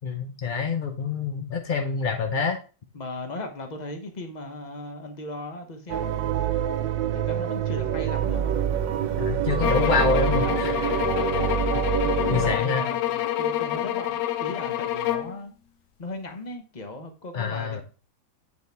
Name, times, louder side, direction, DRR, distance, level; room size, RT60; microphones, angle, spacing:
voice 1, 0.0-2.6 9.2-10.9 11.4-11.5 12.3-12.8 17.3-17.8, left 5 dB, 60° left, 4 dB, 0.5 m, -26 dB
voice 2, 2.9-6.6 7.1-8.6 9.4-11.2 12.0-15.5 16.0-17.8, left 2 dB, 30° left, 5 dB, 0.8 m, -37 dB
sound 1, 5.9-12.6, right 10 dB, 90° right, 1.4 m, -26 dB
sound 2, 9.6-15.4, left 12 dB, 75° left, 1.3 m, -27 dB
8.3 x 4.7 x 3.4 m, 0.35 s
omnidirectional pair, 1.9 m